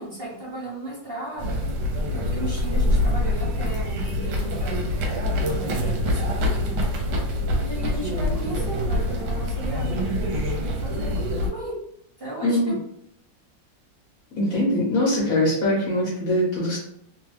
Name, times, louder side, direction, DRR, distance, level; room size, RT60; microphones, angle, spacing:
voice 1, 0.0-1.6 2.1-4.9 5.3-7.0 7.6-11.7 12.2-12.6, right 1 dB, 35° right, -8 dB, 1.1 m, -35 dB
sound 1, 1.4-11.5, left 1 dB, 70° right, 1.2 m, -25 dB
voice 2, 12.4-12.7 14.3-16.8, left 1 dB, 55° left, -5 dB, 1.1 m, -22 dB
3.0 x 2.2 x 3.2 m, 0.73 s
omnidirectional pair, 2.0 m